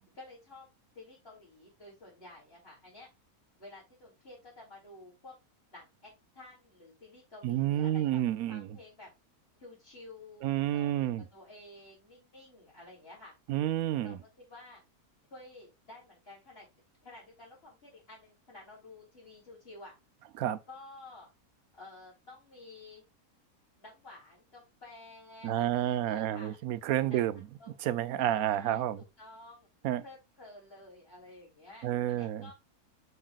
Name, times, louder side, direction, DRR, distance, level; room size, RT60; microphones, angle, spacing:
voice 1, 0.1-0.7 0.9-3.1 3.6-5.3 5.7-6.1 6.4-8.2 8.5-9.1 9.6-13.3 14.0-14.8 15.3-16.7 17.0-19.9 20.7-21.3 21.7-23.0 23.8-26.6 27.1-27.2 27.6-27.7 28.2-29.7 30.0-32.5, left 2 dB, 40° left, 3.6 m, -52 dB
voice 2, 7.4-8.7 10.4-11.2 13.5-14.2 20.4-20.6 25.4-27.4 27.8-29.0 29.8-30.0 31.8-32.5, right 12 dB, 75° right, 1.1 m, -30 dB
7.5 x 5.6 x 2.4 m
omnidirectional pair, 1.6 m